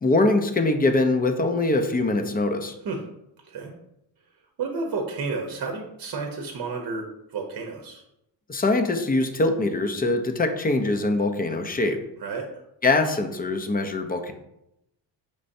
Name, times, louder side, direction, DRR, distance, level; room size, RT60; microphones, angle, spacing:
voice 1, 0.0-2.8 8.5-12.0 12.8-14.3, left 2 dB, 20° left, 6 dB, 0.5 m, -23 dB
voice 2, 4.6-8.0 12.2-12.5, right 4 dB, 50° right, 2 dB, 0.8 m, -31 dB
5.2 x 3.3 x 2.6 m, 0.82 s
cardioid pair, 80°, 46 cm